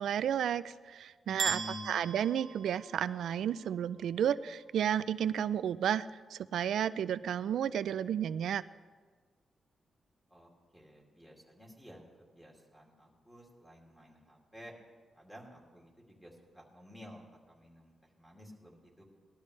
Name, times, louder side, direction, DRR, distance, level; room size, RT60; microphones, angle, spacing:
voice 1, 0.0-1.6 1.9-8.6, right 9 dB, 90° right, 15 dB, 0.3 m, -32 dB
voice 2, 1.2-1.9 10.3-14.7 15.1-19.0, equal, 5° left, -3 dB, 2.6 m, -52 dB
sound 1, 1.4-3.4, right 5 dB, 65° right, 0.9 m, -38 dB
19.0 x 12.5 x 3.2 m, 1.5 s
wide cardioid pair, 130°, 0 cm